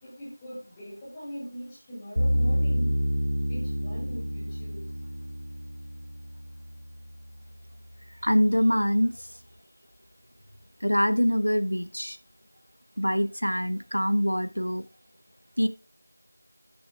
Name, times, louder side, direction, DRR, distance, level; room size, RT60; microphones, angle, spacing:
voice 1, 0.0-2.9 3.5-4.8, equal, 5° left, -8 dB, 1.7 m, -40 dB
sound 1, 2.2-7.3, equal, 70° right, 0.8 m, -28 dB
voice 2, 8.2-9.3 10.8-12.2 13.0-14.8 15.6-15.7, equal, 80° left, 12 dB, 1.2 m, -24 dB
12.0 x 7.0 x 3.4 m, 0.28 s
figure-of-eight pair, 175°, 0 cm